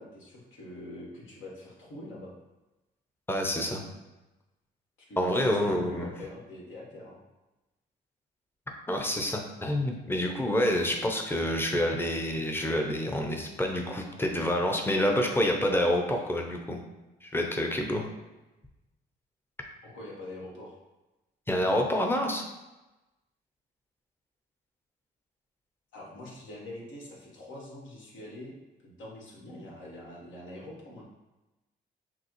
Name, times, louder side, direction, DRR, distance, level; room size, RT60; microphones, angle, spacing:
voice 1, 0.0-2.3 5.1-7.2 19.8-20.8 25.9-28.5 28.8-31.0, left 1 dB, 70° left, -3 dB, 1.4 m, -44 dB
voice 2, 3.3-3.8 5.2-6.1 8.9-16.8 17.2-18.0 21.5-22.4, left 1 dB, 10° left, 2 dB, 0.7 m, -27 dB
5.9 x 2.0 x 3.0 m, 1.0 s
supercardioid pair, 65°, 20 cm